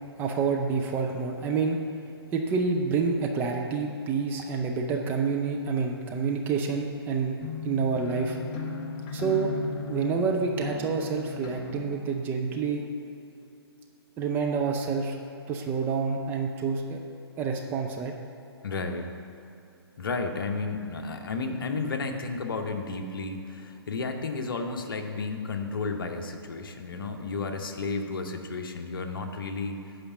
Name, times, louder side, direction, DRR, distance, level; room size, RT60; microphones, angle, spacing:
voice 1, 0.2-1.8 2.3-7.4 7.6-8.4 9.1-9.5 9.9-12.9 14.2-15.2 15.5-17.0 17.4-18.2, right 5 dB, 15° right, 1 dB, 0.4 m, -28 dB
sound 1, 7.4-11.9, left 4 dB, 25° left, 0.7 m, -36 dB
voice 2, 18.6-19.1 20.0-30.0, left 4 dB, 55° left, 5 dB, 1.0 m, -32 dB
8.5 x 5.1 x 7.1 m, 2.7 s
figure-of-eight pair, 130°, 14 cm